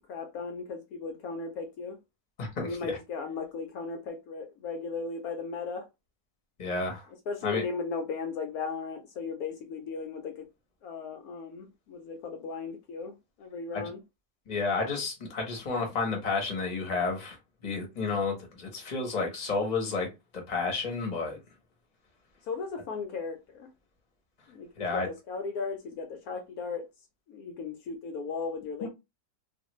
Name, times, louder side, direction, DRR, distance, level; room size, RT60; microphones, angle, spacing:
voice 1, 0.1-2.0 2.6-5.9 7.3-10.5 10.8-14.0 22.5-23.7 24.5-26.9 27.3-28.9, left 4 dB, 75° left, 1.0 m, -36 dB
voice 2, 2.4-3.0 6.6-7.1 7.4-7.6 13.7-13.9 14.5-17.4 17.6-20.1 20.3-21.4 24.8-25.1 28.8-28.9, left 4 dB, 30° left, 0.9 m, -31 dB
2.5 x 2.5 x 3.0 m
omnidirectional pair, 1.6 m